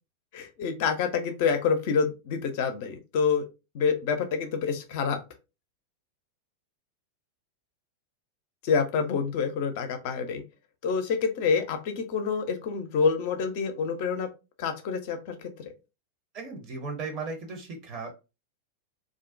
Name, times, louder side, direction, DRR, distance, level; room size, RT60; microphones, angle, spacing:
voice 1, 0.3-3.5 3.7-5.2 8.6-10.4 10.8-14.3 14.6-15.7, left 5 dB, 50° left, 7 dB, 0.5 m, -27 dB
voice 2, 16.3-18.1, right 4 dB, 40° right, 4 dB, 0.6 m, -36 dB
2.4 x 2.1 x 2.5 m, 0.28 s
figure-of-eight pair, 90°, 0 cm